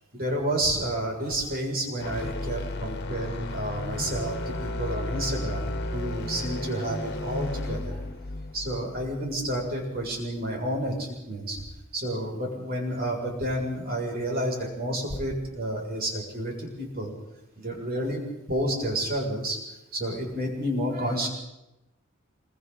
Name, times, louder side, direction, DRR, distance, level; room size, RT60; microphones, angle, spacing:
voice 1, 0.1-8.0 8.5-11.6 11.9-17.1 17.6-18.2 18.5-19.6 19.9-21.3, right 1 dB, 50° right, 0 dB, 7.1 m, -30 dB
sound 1, 2.0-10.1, left 2 dB, 55° left, 1.9 m, -34 dB
27.0 x 24.5 x 4.2 m, 0.93 s
head